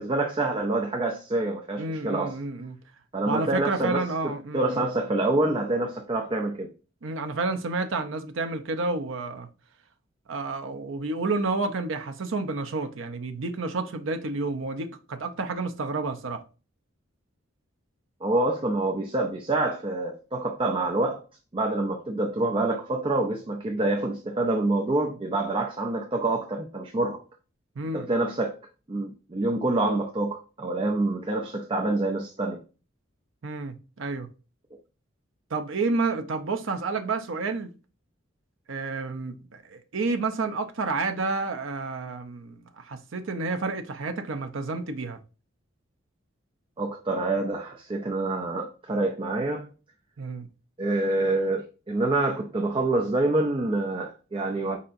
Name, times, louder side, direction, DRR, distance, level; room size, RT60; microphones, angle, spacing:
voice 1, 0.0-2.4 3.1-6.7 18.2-21.2 21.5-27.2 27.9-28.6 28.9-32.6 46.8-49.7 50.8-54.8, right 2 dB, 25° right, 0.4 m, -27 dB
voice 2, 1.8-2.8 3.2-4.9 7.0-9.5 10.3-16.4 27.8-28.1 33.4-34.3 35.5-37.7 38.7-45.2 50.2-50.5, right 3 dB, 70° right, 0.6 m, -30 dB
4.8 x 4.2 x 2.5 m
head